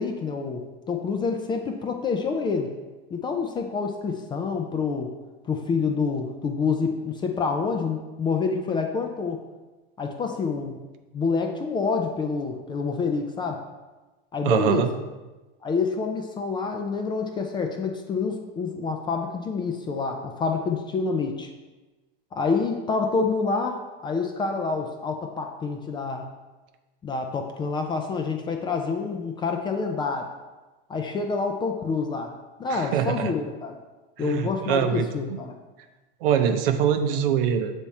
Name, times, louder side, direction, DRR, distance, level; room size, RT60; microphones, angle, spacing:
voice 1, 0.0-2.7 3.1-5.1 5.4-9.4 10.0-10.9 11.1-13.6 14.3-14.9 15.6-21.5 22.4-26.3 27.0-30.3 30.9-32.3 32.6-33.8 34.2-35.5, left 4 dB, 15° left, 4 dB, 0.3 m, -27 dB
voice 2, 14.4-14.9 32.7-33.3 34.2-35.1 36.2-37.7, right 8 dB, 70° right, 8 dB, 0.7 m, -23 dB
7.1 x 3.5 x 4.2 m, 1.2 s
supercardioid pair, 140°, 29 cm